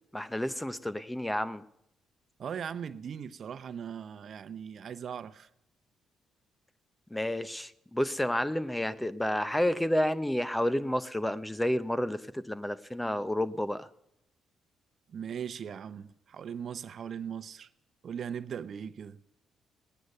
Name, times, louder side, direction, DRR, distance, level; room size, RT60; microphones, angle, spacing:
voice 1, 0.1-1.6 7.1-13.9, left 1 dB, 10° left, 0.7 m, -30 dB
voice 2, 2.4-5.5 15.1-17.7 18.0-19.2, right 8 dB, 55° right, 0.7 m, -39 dB
19.0 x 9.5 x 6.6 m
cardioid pair, 90°, 0 cm